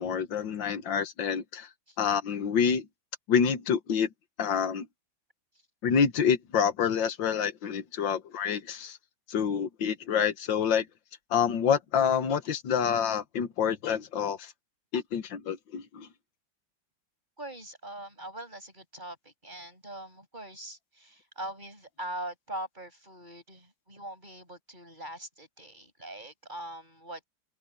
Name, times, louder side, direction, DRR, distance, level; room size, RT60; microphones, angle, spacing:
voice 1, 0.0-1.7 2.0-2.9 3.3-4.1 4.4-4.9 5.8-9.0 9.3-10.9 11.3-14.5 14.9-16.1, left 7 dB, 85° left, 2.0 m, -27 dB
voice 2, 17.4-27.2, right 1 dB, 25° right, 8.3 m, -42 dB
open air
omnidirectional pair, 2.0 m